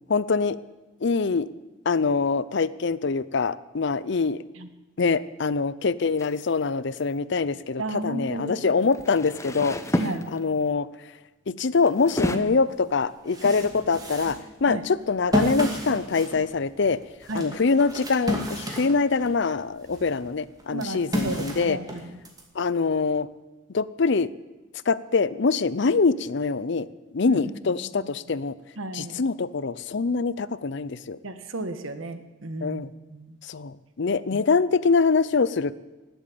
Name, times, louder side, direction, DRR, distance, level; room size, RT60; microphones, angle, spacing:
voice 1, 0.1-0.6 1.0-1.5 1.9-4.4 5.0-9.8 10.3-10.9 11.5-17.0 17.3-21.8 22.5-23.3 23.7-24.3 24.9-26.9 27.1-28.6 28.9-31.2 32.6-32.9 33.4-35.7, left 4 dB, 60° left, 17 dB, 0.6 m, -24 dB
sound 1, 6.2-6.4 8.8-10.7 11.8-12.4, left 1 dB, 15° left, 0.9 m, -29 dB
voice 2, 7.8-8.7 10.0-10.3 14.7-14.8 17.3-17.6 20.7-22.2 27.2-28.1 28.8-29.2 31.2-33.4, right 2 dB, 80° right, 9 dB, 1.4 m, -34 dB
sound 2, 12.5-12.6 13.0-19.4 19.8-22.4, equal, 20° right, 2.3 m, -32 dB
18.5 x 8.0 x 8.6 m, 1.1 s
head